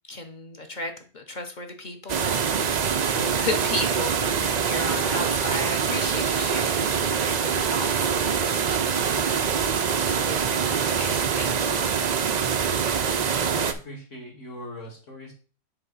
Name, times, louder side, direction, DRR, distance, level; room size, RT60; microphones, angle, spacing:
voice 1, 0.1-12.0, left 2 dB, 40° left, 5 dB, 0.8 m, -35 dB
sound 1, 2.1-13.7, right 7 dB, 75° right, 0.4 m, -24 dB
voice 2, 3.0-3.4 12.9-15.3, equal, 60° left, -1 dB, 2.4 m, -40 dB
7.0 x 3.4 x 5.5 m, 0.38 s
omnidirectional pair, 1.5 m